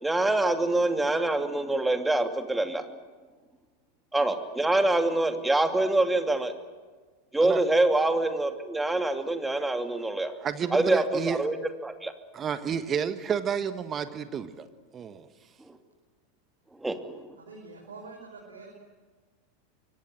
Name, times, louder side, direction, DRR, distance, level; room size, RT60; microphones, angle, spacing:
voice 1, 0.0-2.9 4.1-6.5 7.3-10.3 10.7-11.6 11.8-12.1 15.7-15.8 16.8-17.4, right 2 dB, 10° right, 7 dB, 2.7 m, -25 dB
voice 2, 10.4-11.4 12.3-14.7 14.9-15.3, right 7 dB, 30° right, 11 dB, 1.5 m, -30 dB
voice 3, 17.4-18.7, right 3 dB, 75° right, 0 dB, 5.4 m, -45 dB
25.5 x 24.5 x 7.7 m, 1.4 s
figure-of-eight pair, 85°, 0 cm